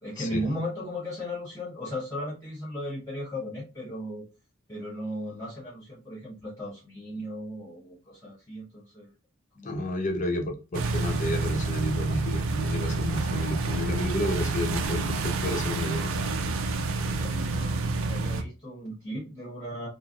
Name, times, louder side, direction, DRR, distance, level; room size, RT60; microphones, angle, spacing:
voice 1, 0.0-4.3 4.7-9.1 9.5-10.0 16.8-19.9, equal, 15° left, -10 dB, 0.9 m, -36 dB
voice 2, 9.6-16.1, left 1 dB, 35° left, 4 dB, 0.5 m, -31 dB
sound 1, 10.7-18.4, right 3 dB, 80° right, 0.4 m, -28 dB
3.1 x 2.5 x 2.4 m, 0.30 s
head